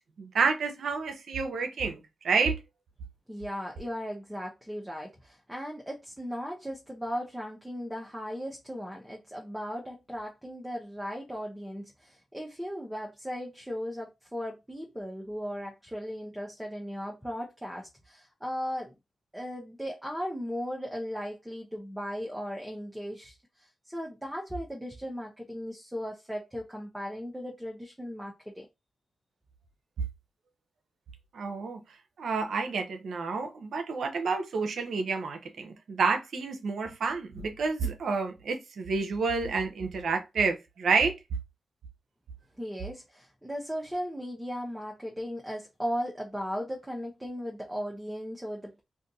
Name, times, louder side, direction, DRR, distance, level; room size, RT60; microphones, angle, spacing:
voice 1, 0.2-2.0 2.2-2.6 31.3-31.8 32.2-41.1, right 4 dB, 75° right, 0.6 m, -29 dB
voice 2, 3.3-19.0 19.3-28.7 42.6-48.8, equal, 5° right, 0.8 m, -37 dB
2.5 x 2.5 x 3.9 m
cardioid pair, 55°, 0 cm